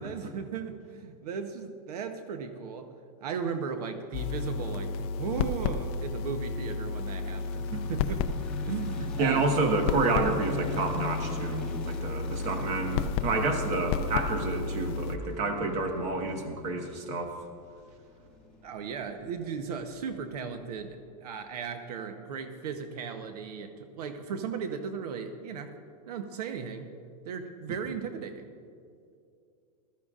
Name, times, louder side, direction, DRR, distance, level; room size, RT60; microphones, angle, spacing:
voice 1, 0.0-2.9 3.2-8.3 8.7-9.5 18.6-25.7 26.1-26.9 27.2-28.5, right 6 dB, 75° right, 7 dB, 1.0 m, -36 dB
sound 1, 4.1-15.2, left 5 dB, 40° left, 0.5 m, -32 dB
sound 2, 6.7-20.8, left 3 dB, 5° left, 1.8 m, -43 dB
voice 2, 9.2-17.4, right 3 dB, 35° right, 4 dB, 1.4 m, -29 dB
19.5 x 13.5 x 2.5 m, 2.4 s
supercardioid pair, 155°, 20 cm